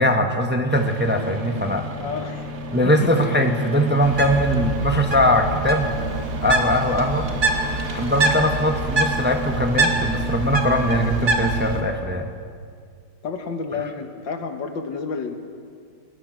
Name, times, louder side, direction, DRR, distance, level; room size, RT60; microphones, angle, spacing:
voice 1, 0.0-1.8 2.7-5.9 6.4-7.3 7.9-12.3, equal, 10° right, 5 dB, 0.9 m, -21 dB
sound 1, 0.7-11.8, right 2 dB, 65° right, 2.2 m, -33 dB
voice 2, 2.0-2.5 2.8-3.3 13.2-15.3, left 5 dB, 90° left, 6 dB, 2.2 m, -30 dB
Bird, 4.0-11.8, right 2 dB, 50° right, 2.2 m, -25 dB
22.5 x 19.5 x 6.3 m, 2.1 s
omnidirectional pair, 2.0 m